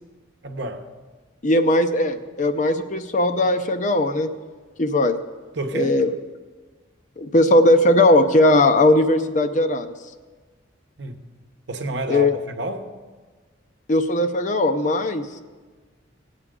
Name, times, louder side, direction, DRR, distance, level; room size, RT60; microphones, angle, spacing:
voice 1, 0.4-0.9 5.5-6.0 11.0-11.3 11.7-12.9, right 2 dB, 60° right, 0.9 m, -29 dB
voice 2, 1.4-4.3 4.8-5.2 5.7-6.1 7.2-9.9 12.1-12.4 13.9-15.3, left 1 dB, 40° left, 0.6 m, -18 dB
19.5 x 8.3 x 3.7 m
head